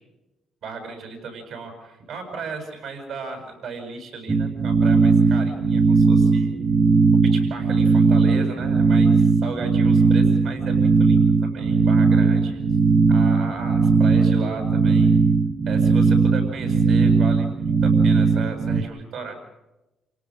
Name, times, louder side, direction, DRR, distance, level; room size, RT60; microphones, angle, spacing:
voice 1, 0.6-6.6 7.2-12.6 13.1-15.1 15.7-17.5 17.8-19.3, right 4 dB, 75° right, 4 dB, 7.6 m, -35 dB
sound 1, 4.3-18.8, right 4 dB, 35° right, 1.9 m, -18 dB
29.0 x 18.0 x 6.5 m, 0.98 s
cardioid pair, 75°, 0 cm